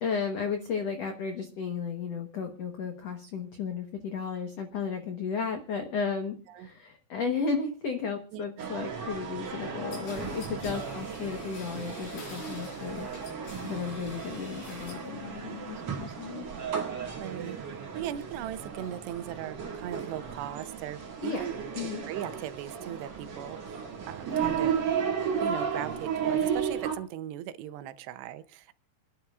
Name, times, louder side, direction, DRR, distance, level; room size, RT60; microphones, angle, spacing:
voice 1, 0.0-13.1 13.6-16.4 21.2-21.4 21.7-22.0, left 5 dB, 85° left, 5 dB, 1.4 m, -34 dB
voice 2, 8.3-8.8 10.7-10.8 17.0-21.5 21.8-24.8 25.4-28.7, right 11 dB, 90° right, 13 dB, 2.9 m, -39 dB
sound 1, 8.6-27.0, right 7 dB, 45° right, 3.2 m, -34 dB
sound 2, 9.9-15.1 15.5-16.1, left 3 dB, 50° left, 6.5 m, -48 dB
28.0 x 10.5 x 2.4 m, 0.35 s
omnidirectional pair, 4.8 m